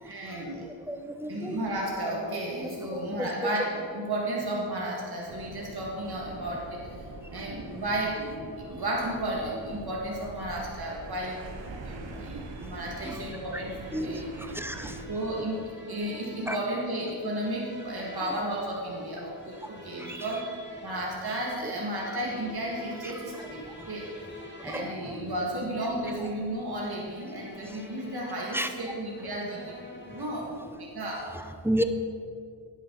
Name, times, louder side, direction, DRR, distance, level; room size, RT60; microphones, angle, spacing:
voice 1, 0.0-0.7 1.3-7.1 7.3-11.4 11.7-14.3 14.8-23.6 23.9-24.1 24.6-31.2, right 1 dB, 55° right, -3 dB, 2.2 m, -33 dB
voice 2, 0.7-1.6 2.6-3.5 12.1-12.2 13.0-13.2 13.5-13.6 13.9-14.2 14.5-15.0 16.5-16.6 20.0-20.2 21.6-21.7 23.0-23.4 23.8-23.9 24.6-25.1 28.5-28.7 31.3-31.8, equal, 5° right, 7 dB, 0.8 m, -33 dB
sound 1, 5.3-15.1, right 3 dB, 75° right, 1.1 m, -44 dB
sound 2, 12.6-30.6, equal, 25° left, 1.9 m, -50 dB
10.0 x 9.4 x 4.1 m, 2.4 s
cardioid pair, 45°, 44 cm